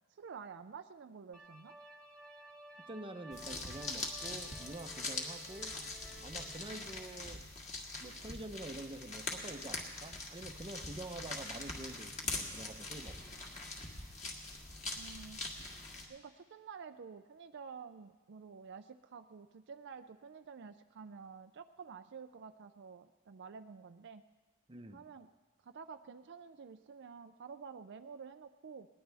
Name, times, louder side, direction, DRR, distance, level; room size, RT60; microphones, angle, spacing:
voice 1, 0.1-1.7 14.9-15.4 16.1-24.2 24.9-25.3 25.6-28.9, right 6 dB, 55° right, 8 dB, 0.4 m, -50 dB
sound 1, 1.3-7.0, right 1 dB, ahead, 1.4 m, -55 dB
voice 2, 2.9-5.8 6.2-7.4 8.0-13.2 24.7-25.0, right 2 dB, 25° right, 8 dB, 0.7 m, -47 dB
sound 2, 3.3-16.0, left 2 dB, 30° left, 1.9 m, -43 dB
20.0 x 19.0 x 3.4 m, 1.3 s
head